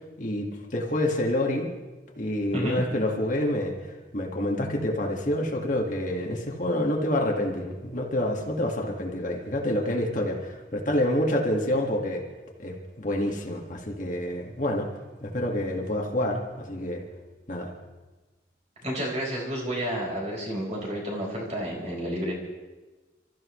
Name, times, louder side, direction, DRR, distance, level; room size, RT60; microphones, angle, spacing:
voice 1, 0.2-1.7 2.2-12.2 12.6-14.9 15.2-17.0 17.5-17.7, left 1 dB, 45° left, 0 dB, 2.0 m, -28 dB
voice 2, 18.8-22.3, equal, 40° right, -3 dB, 4.7 m, -30 dB
30.0 x 14.0 x 3.3 m, 1.2 s
head